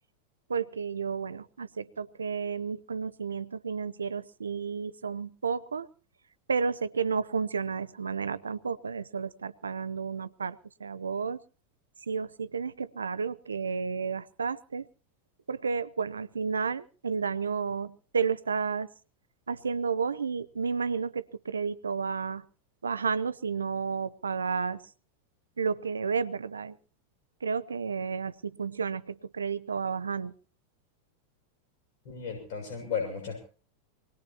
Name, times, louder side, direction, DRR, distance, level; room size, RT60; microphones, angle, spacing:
voice 1, 0.5-5.9 6.5-11.4 12.0-14.9 15.5-18.9 19.5-22.4 22.8-24.8 25.6-26.8 27.4-30.3, right 5 dB, 85° right, 17 dB, 0.8 m, -32 dB
voice 2, 32.1-33.4, left 6 dB, 60° left, 2 dB, 6.9 m, -34 dB
24.5 x 18.5 x 2.9 m, 0.39 s
hypercardioid pair, 95°, 0 cm